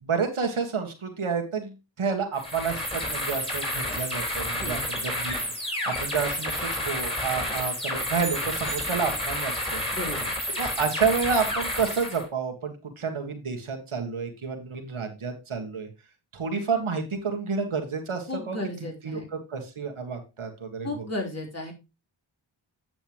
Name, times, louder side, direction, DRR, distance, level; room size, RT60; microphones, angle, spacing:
voice 1, 0.0-5.3 5.6-9.8 10.6-15.9 16.3-21.1, right 5 dB, 85° right, 3 dB, 1.8 m, -30 dB
sound 1, 2.3-12.3, left 1 dB, 10° left, 4.1 m, -30 dB
voice 2, 4.5-4.8 9.9-10.3 18.3-19.3 20.8-21.7, left 2 dB, 30° left, 1 dB, 3.7 m, -34 dB
sound 2, 8.2-9.6, right 6 dB, 45° right, 1.5 m, -43 dB
9.1 x 7.0 x 3.0 m, 0.26 s
cardioid pair, 40°, 48 cm